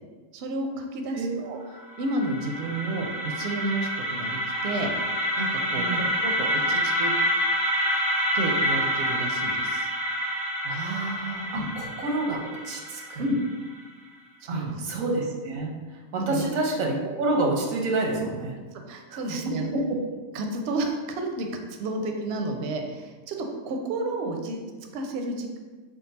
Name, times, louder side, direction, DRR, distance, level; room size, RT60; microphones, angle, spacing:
voice 1, 0.3-1.6 2.0-4.9 5.4-7.1 8.3-9.9 11.5-11.7 13.2-13.4 14.4-14.8 16.2-16.4 18.7-19.7 20.3-25.6, right 2 dB, 65° right, 3 dB, 0.7 m, -31 dB
sound 1, 1.8-13.7, equal, 10° right, 0.3 m, -28 dB
voice 2, 10.6-13.2 14.5-18.6 19.1-19.2 19.7-20.0, right 2 dB, 90° right, 0 dB, 1.1 m, -28 dB
3.7 x 2.2 x 4.0 m, 1.4 s
omnidirectional pair, 1.4 m